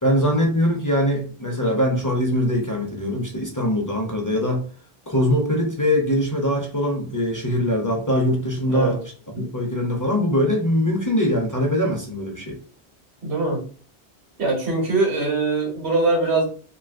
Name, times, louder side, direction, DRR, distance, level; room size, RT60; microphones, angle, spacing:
voice 1, 0.0-4.6 5.1-9.0 9.3-12.6, equal, 25° left, 0 dB, 0.5 m, -22 dB
voice 2, 8.7-9.0 9.3-9.4 13.2-13.6 14.4-16.4, right 3 dB, 85° right, -1 dB, 1.5 m, -22 dB
2.9 x 2.9 x 2.4 m, 0.41 s
omnidirectional pair, 1.1 m